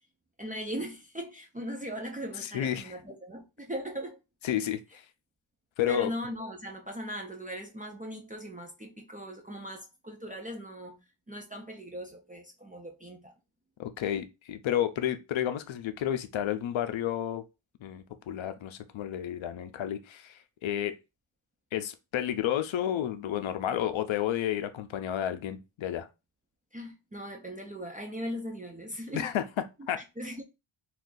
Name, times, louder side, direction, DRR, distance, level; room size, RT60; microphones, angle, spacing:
voice 1, 0.4-4.2 5.9-11.0 11.3-13.3 26.7-29.3 30.2-30.4, equal, 20° right, 0.3 m, -39 dB
voice 2, 2.4-2.9 4.4-5.0 5.8-6.1 13.8-17.4 17.8-20.9 21.7-26.1 29.1-29.4 29.9-30.0, left 10 dB, 65° left, 0.5 m, -31 dB
2.6 x 2.4 x 3.7 m
wide cardioid pair, 175°, 50 cm